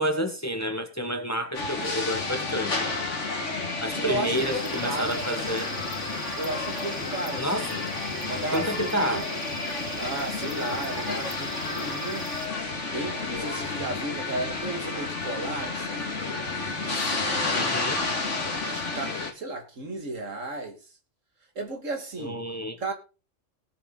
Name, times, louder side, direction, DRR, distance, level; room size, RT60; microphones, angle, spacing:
voice 1, 0.0-2.9 3.8-5.7 7.4-7.6 8.5-9.3 17.6-18.0 22.2-22.8, equal, 15° left, 1.2 m, -29 dB
sound 1, 1.5-19.3, left 3 dB, 70° left, 2.5 m, -31 dB
voice 2, 3.9-5.2 6.4-7.8 8.3-12.3 12.8-16.1 17.1-17.9 18.6-20.8 21.6-22.4 22.8-22.9, right 2 dB, 85° right, 2.5 m, -34 dB
sound 2, 4.4-12.5, right 3 dB, 20° right, 0.6 m, -42 dB
19.0 x 6.8 x 4.0 m
omnidirectional pair, 1.3 m